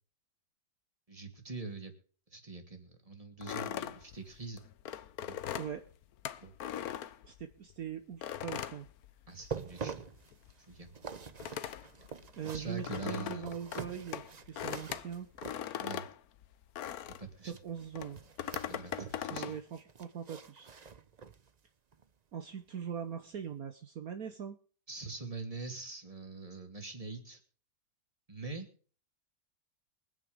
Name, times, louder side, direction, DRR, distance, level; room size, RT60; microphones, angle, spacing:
voice 1, 1.1-1.9 2.3-4.6 5.3-5.4 6.4-6.5 9.3-10.1 10.7-10.9 12.5-13.5 15.8-16.1 17.1-17.6 18.6-19.5 24.9-27.4 28.3-28.7, right 3 dB, 20° right, 4 dB, 2.8 m, -44 dB
sound 1, 3.4-7.7 8.2-9.7 10.0-17.3 17.9-19.6, left 10 dB, 70° left, 1.2 m, -40 dB
voice 2, 7.2-8.9 12.4-15.3 17.4-18.2 19.3-20.7 22.3-24.6, right 8 dB, 60° right, 7 dB, 1.5 m, -41 dB
sound 2, 9.3-16.0 17.4-19.2 19.5-21.5 21.9-22.1 22.6-22.7, right 6 dB, 40° right, 0.6 m, -46 dB
23.5 x 9.2 x 3.6 m, 0.42 s
omnidirectional pair, 1.8 m